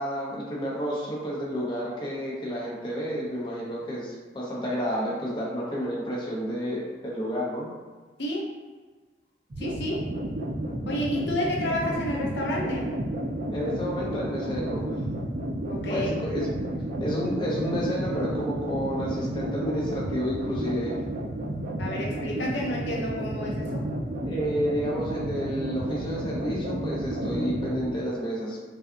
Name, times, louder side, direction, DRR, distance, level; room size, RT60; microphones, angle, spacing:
voice 1, 0.0-7.7 13.5-14.9 15.9-16.5 17.0-21.0 24.2-28.6, equal, 25° left, -5 dB, 0.7 m, -30 dB
sound 1, 9.5-27.9, right 1 dB, 45° right, 0.5 m, -31 dB
voice 2, 9.6-10.0 10.9-12.9 15.7-16.1 21.8-23.8, left 1 dB, 70° left, -1 dB, 0.5 m, -30 dB
5.2 x 2.4 x 2.6 m, 1.4 s
head